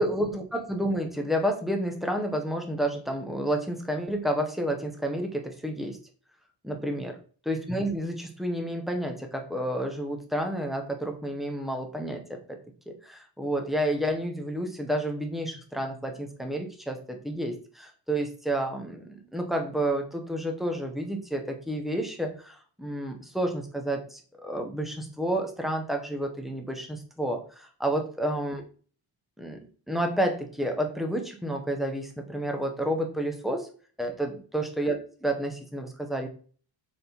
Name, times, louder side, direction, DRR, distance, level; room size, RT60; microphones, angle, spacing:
voice 1, 0.0-6.0 6.6-7.1 7.5-12.6 13.0-28.6 29.4-33.7 34.0-36.3, right 1 dB, ahead, 3 dB, 1.0 m, -30 dB
6.8 x 3.7 x 4.1 m, 0.42 s
cardioid pair, 150°, 46 cm